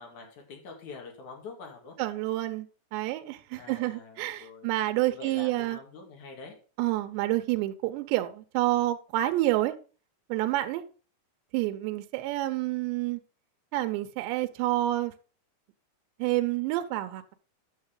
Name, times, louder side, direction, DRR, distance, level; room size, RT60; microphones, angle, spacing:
voice 1, 0.0-2.0 3.5-4.7 5.1-6.5, left 4 dB, 50° left, 3.0 m, -45 dB
voice 2, 2.0-2.7 2.9-5.8 6.8-9.7 10.3-10.8 11.5-13.2 13.7-15.1 16.2-17.4, right 16 dB, 85° right, 2.8 m, -28 dB
10.0 x 6.4 x 3.8 m
omnidirectional pair, 5.0 m